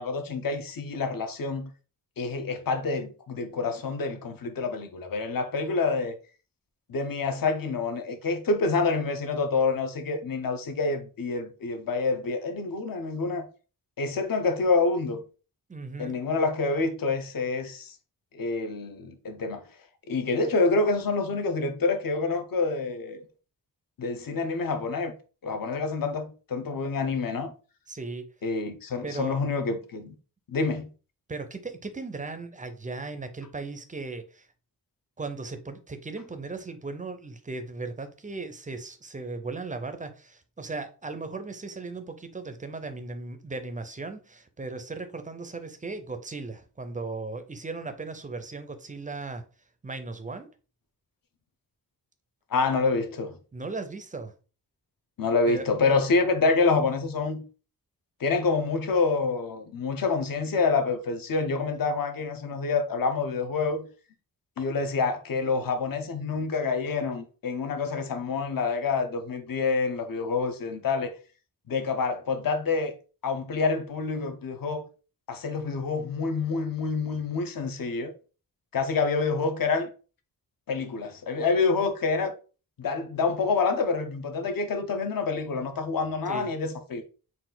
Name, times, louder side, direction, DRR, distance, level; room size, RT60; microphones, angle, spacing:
voice 1, 0.0-1.7 2.2-6.1 6.9-13.5 14.0-15.2 16.0-17.9 18.3-19.7 20.1-23.2 24.0-25.1 25.4-27.5 28.4-30.1 30.5-30.9 52.5-53.4 55.2-57.4 58.2-63.9 64.6-71.1 71.7-72.9 73.2-74.8 75.3-78.1 78.7-79.9 80.7-82.3 82.8-87.0, left 4 dB, 60° left, 0.7 m, -27 dB
voice 2, 15.7-16.2 27.9-28.3 29.0-29.4 31.3-34.5 35.2-49.4 49.8-50.5 53.5-54.3 55.5-55.7 86.3-86.5, right 3 dB, 20° right, 0.4 m, -37 dB
4.1 x 2.4 x 3.8 m
wide cardioid pair, 175°, 39 cm